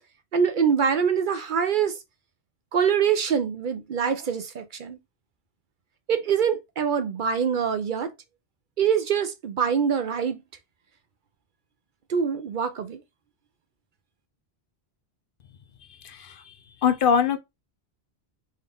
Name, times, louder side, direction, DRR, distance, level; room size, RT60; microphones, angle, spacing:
voice 1, 0.3-2.0 2.7-5.0 6.1-8.1 8.8-10.4 12.1-13.0, right 7 dB, 55° right, 0.7 m, -24 dB
voice 2, 16.0-16.3 16.8-17.4, left 7 dB, 65° left, 0.7 m, -22 dB
4.0 x 2.5 x 3.4 m
omnidirectional pair, 1.1 m